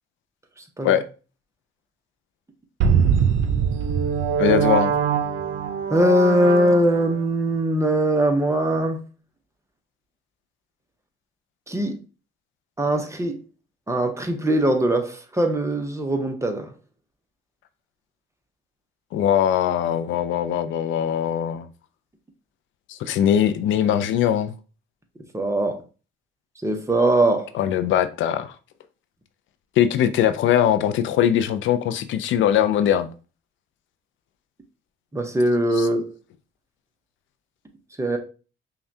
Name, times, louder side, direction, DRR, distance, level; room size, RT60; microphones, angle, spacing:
sound 1, 2.8-7.2, right 7 dB, 85° right, 0.5 m, -22 dB
voice 1, 4.4-5.0 19.1-21.7 22.9-24.5 27.5-28.5 29.8-33.1 35.8-35.9, left 10 dB, 75° left, 0.4 m, -21 dB
voice 2, 5.9-9.0 11.7-12.0 12.8-13.4 13.9-16.7 25.3-25.8 26.6-27.5 35.1-36.1 38.0-38.2, right 1 dB, 15° right, 0.7 m, -21 dB
5.4 x 2.3 x 2.7 m
cardioid pair, 90°, 20 cm